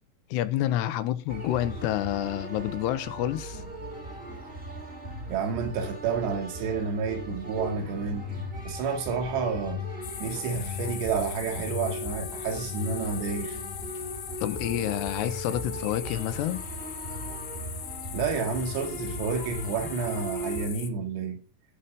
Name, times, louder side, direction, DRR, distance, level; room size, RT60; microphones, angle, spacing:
voice 1, 0.3-3.6 14.4-16.6, left 13 dB, 80° left, 2.8 m, -28 dB
sound 1, 1.3-20.7, left 1 dB, 20° right, 1.9 m, -38 dB
voice 2, 5.3-8.3 8.7-9.8 10.2-13.6 18.1-21.4, right 5 dB, 75° right, 4.1 m, -30 dB
sound 2, 10.0-20.9, left 10 dB, 65° left, 2.1 m, -40 dB
15.5 x 5.7 x 5.5 m
omnidirectional pair, 5.0 m